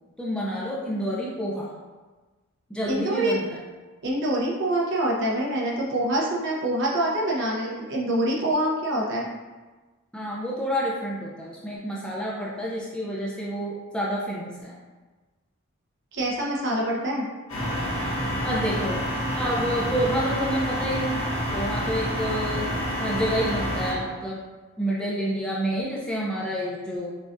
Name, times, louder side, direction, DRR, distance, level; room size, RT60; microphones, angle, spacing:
voice 1, 0.2-1.7 2.7-3.4 10.1-14.7 18.3-19.0 19.3-21.2 21.5-22.6 23.0-24.4 24.8-27.1, equal, 5° left, -6 dB, 0.5 m, -29 dB
voice 2, 2.9-3.3 4.0-9.3 16.1-17.2, right 1 dB, 55° right, -3 dB, 0.8 m, -25 dB
sound 1, 17.5-23.9, equal, 70° left, 1.4 m, -28 dB
6.0 x 2.4 x 2.6 m, 1.3 s
head